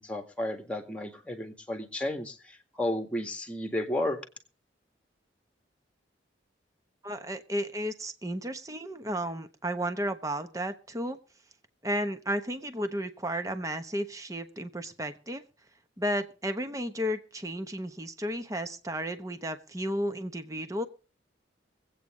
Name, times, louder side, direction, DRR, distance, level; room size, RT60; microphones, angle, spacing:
voice 1, 0.0-4.2, left 1 dB, 5° left, 4 dB, 1.9 m, -33 dB
voice 2, 7.0-11.2 11.8-15.4 16.0-20.9, equal, 20° right, 9 dB, 1.0 m, -33 dB
22.5 x 8.6 x 3.8 m, 0.34 s
head